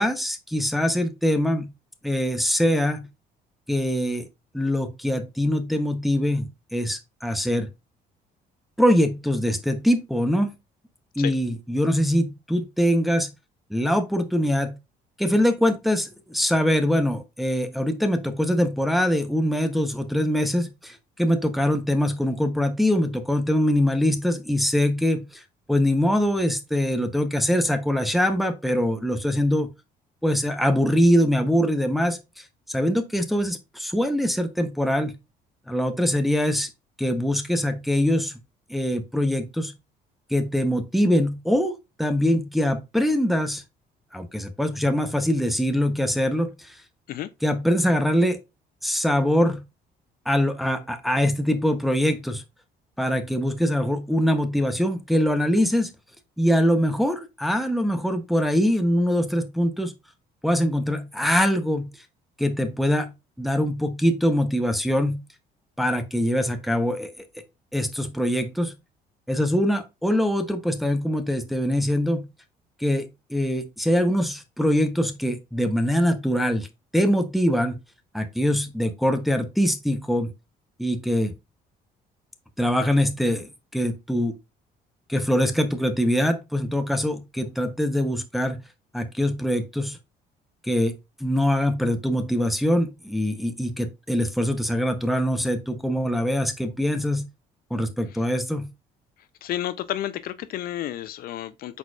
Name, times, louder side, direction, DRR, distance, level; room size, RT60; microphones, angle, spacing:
voice 1, 0.0-1.7 2.0-3.1 3.7-4.3 4.5-7.7 8.8-10.5 11.2-13.3 13.7-14.7 15.2-25.4 25.7-29.7 30.2-32.2 32.7-35.1 35.7-36.7 37.0-38.3 38.7-39.7 40.3-43.6 44.1-46.7 47.4-48.4 48.8-49.6 50.3-52.4 53.0-55.9 56.4-59.9 60.4-61.9 62.4-63.1 63.4-65.2 65.8-67.1 67.7-68.7 69.3-72.3 72.8-76.7 76.9-77.8 78.1-80.3 80.8-81.3 82.6-84.3 85.1-88.6 88.9-90.0 90.6-90.9 91.2-97.3 97.7-98.7, equal, ahead, 0.6 m, -23 dB
voice 2, 99.4-101.8, left 12 dB, 60° left, 0.4 m, -31 dB
4.5 x 4.1 x 2.2 m
cardioid pair, 110°, 17 cm